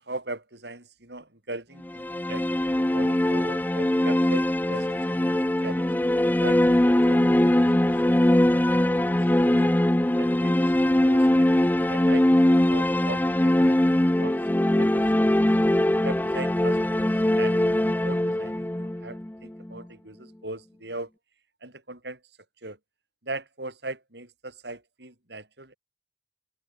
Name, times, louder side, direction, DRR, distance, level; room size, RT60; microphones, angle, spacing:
voice 1, 0.0-2.6 2.9-5.9 6.4-8.8 9.3-9.7 10.2-14.4 14.8-15.6 16.0-21.1 21.6-22.2 22.6-22.8 23.2-25.8, right 2 dB, 65° right, 6.5 m, -40 dB
sound 1, 1.8-19.8, left 1 dB, 10° left, 0.5 m, -22 dB
open air
head